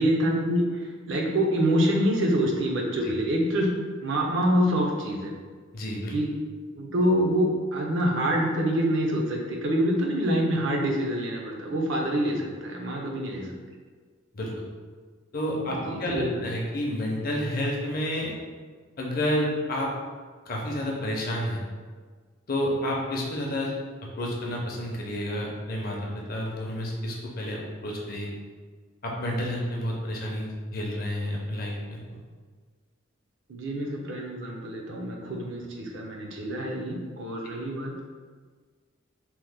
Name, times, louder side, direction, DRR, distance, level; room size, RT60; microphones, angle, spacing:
voice 1, 0.0-3.7 4.0-5.4 6.1-6.3 6.7-13.5 15.6-16.4 33.5-37.9, equal, 60° right, -1 dB, 0.5 m, -26 dB
voice 2, 5.7-6.1 12.9-13.0 14.3-14.5 15.3-18.3 19.0-19.9 20.5-21.6 22.5-23.7 24.2-28.3 29.0-32.2, left 1 dB, 45° left, -2 dB, 0.5 m, -30 dB
2.9 x 2.1 x 3.3 m, 1.5 s
head